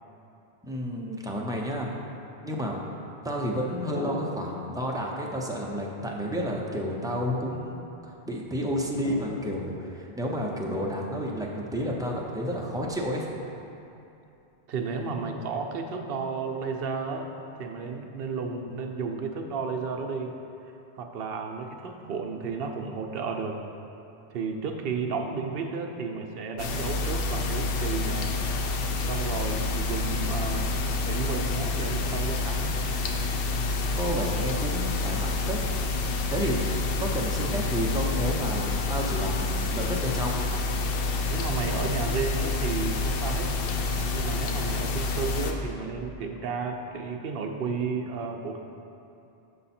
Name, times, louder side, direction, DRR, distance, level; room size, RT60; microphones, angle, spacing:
voice 1, 0.6-1.9 2.4-2.8 3.2-13.4 33.9-35.6 36.3-40.3, equal, 5° right, -2 dB, 0.4 m, -31 dB
sound 1, 3.9-8.3 8.8-14.4, left 1 dB, 85° left, 1.6 m, -45 dB
voice 2, 14.7-17.3 17.6-20.4 21.0-23.6 24.3-28.4 29.0-30.7 31.0-32.8 41.3-43.6 44.1-48.6, right 4 dB, 70° right, 4 dB, 0.8 m, -32 dB
sound 2, 26.6-45.5, left 3 dB, 70° left, 0.8 m, -28 dB
6.8 x 5.6 x 4.2 m, 2.8 s
omnidirectional pair, 1.0 m